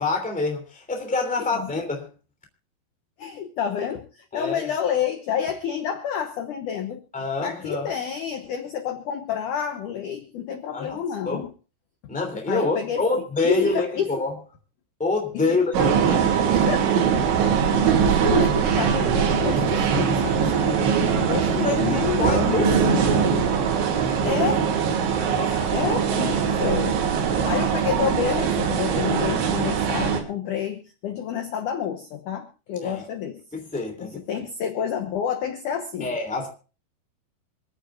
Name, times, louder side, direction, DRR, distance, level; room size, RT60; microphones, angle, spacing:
voice 1, 0.0-2.1 4.3-4.7 7.1-7.9 10.7-11.0 11.3-11.4 12.1-14.3 15.0-15.7 21.4-22.7 25.1-25.7 27.3-27.5 32.8-33.0 33.5-34.2 36.0-36.5, left 3 dB, 5° left, 3 dB, 1.8 m, -26 dB
voice 2, 3.2-7.0 7.4-11.5 12.5-13.0 13.4-14.1 15.3-15.9 16.5-16.9 17.5-20.9 21.2-22.9 24.2-24.6 25.7-27.0 27.4-33.4 34.0-36.1, left 8 dB, 75° left, 5 dB, 1.9 m, -29 dB
sound 1, 15.7-30.2, right 7 dB, 85° right, 4.2 m, -22 dB
27.0 x 9.9 x 2.5 m, 0.35 s
omnidirectional pair, 5.2 m